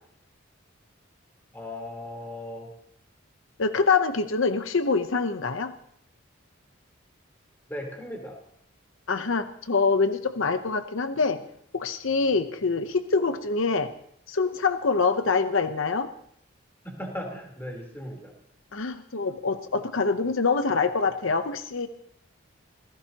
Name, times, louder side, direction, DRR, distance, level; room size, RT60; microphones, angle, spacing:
voice 1, 1.5-2.7 7.7-8.4 16.8-18.3, left 1 dB, 10° left, 1 dB, 3.6 m, -37 dB
voice 2, 3.6-5.7 9.1-11.4 11.7-13.9 14.3-16.1 18.7-21.9, left 4 dB, 75° left, 9 dB, 0.8 m, -25 dB
27.0 x 16.5 x 2.9 m, 0.69 s
head